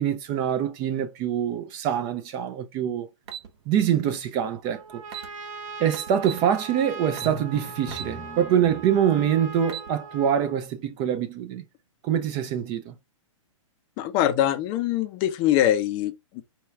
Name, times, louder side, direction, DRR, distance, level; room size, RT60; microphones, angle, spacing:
voice 1, 0.0-3.1 3.7-4.8 5.8-11.6 12.0-13.0, right 9 dB, 30° right, 0.5 m, -25 dB
sound 1, 3.3-3.5 4.7-4.8 5.0-5.3 5.9-6.5 7.2-7.4 7.9-8.1 8.6-8.7 9.5-9.9, right 9 dB, 55° right, 1.0 m, -36 dB
Trumpet, 4.6-10.6, right 4 dB, 80° right, 1.1 m, -40 dB
Drum, 7.2-9.2, equal, 5° left, 0.9 m, -40 dB
voice 2, 14.0-16.4, left 12 dB, 30° left, 0.5 m, -23 dB
4.4 x 2.3 x 3.3 m
hypercardioid pair, 140°, 17 cm